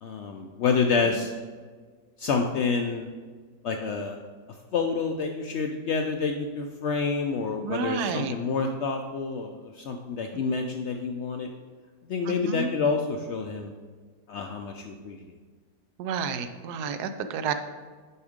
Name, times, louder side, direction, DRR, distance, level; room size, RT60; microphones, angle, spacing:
voice 1, 0.0-1.3 2.2-3.1 3.6-4.2 4.7-11.5 12.1-13.7 14.3-15.2, left 5 dB, 70° left, 4 dB, 0.6 m, -28 dB
voice 2, 7.6-8.3 12.3-12.7 16.0-17.5, right 6 dB, 85° right, 9 dB, 1.1 m, -30 dB
7.0 x 4.9 x 5.0 m, 1.5 s
omnidirectional pair, 1.6 m